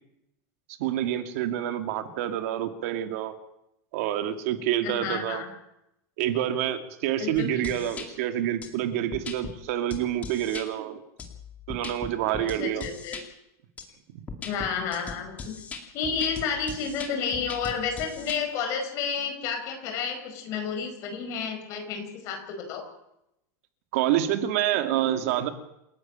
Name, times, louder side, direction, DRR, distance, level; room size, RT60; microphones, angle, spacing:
voice 1, 0.8-3.3 3.9-5.4 6.2-11.0 11.7-12.9 23.9-25.5, right 11 dB, 50° right, 8 dB, 2.4 m, -27 dB
voice 2, 4.8-5.5 7.2-7.9 12.4-13.2 14.4-15.5 15.9-22.8, left 6 dB, 35° left, 5 dB, 5.2 m, -31 dB
sound 1, 7.4-8.1 8.6-8.7 9.1-9.5 9.9-10.7 11.2-13.2 13.8-13.9 14.3-18.4, left 4 dB, 15° left, 2.6 m, -39 dB
28.5 x 11.5 x 8.9 m, 0.82 s
supercardioid pair, 175°, 9 cm